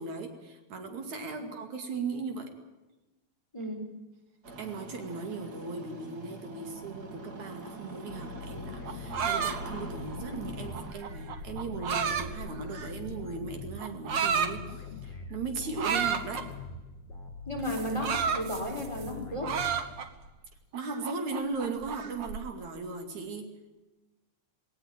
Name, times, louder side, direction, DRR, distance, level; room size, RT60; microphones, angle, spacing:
voice 1, 0.0-2.5 4.6-16.5 20.7-23.5, right 4 dB, 75° right, 5 dB, 3.7 m, -37 dB
voice 2, 3.5-3.9 6.8-6.9 17.5-19.5, equal, 10° left, 3 dB, 4.0 m, -34 dB
Engine starting, 4.4-10.9, right 2 dB, 35° right, 2.1 m, -44 dB
sound 1, 8.1-20.4, left 4 dB, 60° left, 3.9 m, -43 dB
sound 2, 8.7-13.1 13.8-14.5 15.8-16.5 17.7-19.1 19.4-20.3 20.7-22.4, right 7 dB, 50° right, 1.4 m, -32 dB
19.0 x 18.5 x 8.9 m, 1.1 s
omnidirectional pair, 3.3 m